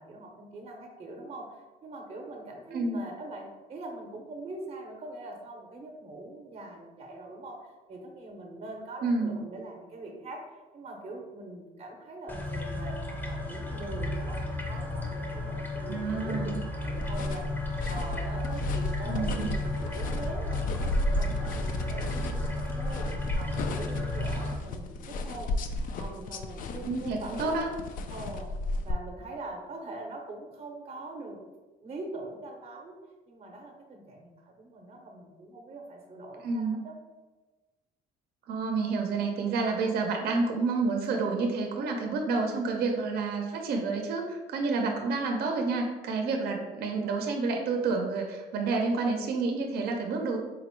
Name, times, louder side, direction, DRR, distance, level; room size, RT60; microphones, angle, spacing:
voice 1, 0.0-14.4 14.7-23.1 23.4-25.5 25.8-27.6 28.1-28.5 28.8-31.5 31.8-33.0 33.3-37.0 44.8-45.0, right 2 dB, 35° right, 1 dB, 0.7 m, -43 dB
voice 2, 9.0-9.4 15.9-16.6 19.0-19.5 26.8-27.7 36.4-36.8 38.5-50.4, right 3 dB, 70° right, 2 dB, 0.6 m, -29 dB
sound 1, 12.3-24.5, left 2 dB, 10° left, 0.6 m, -33 dB
sound 2, 16.9-28.9, left 2 dB, 55° left, 0.4 m, -34 dB
3.9 x 2.0 x 4.4 m, 1.2 s
cardioid pair, 110°, 17 cm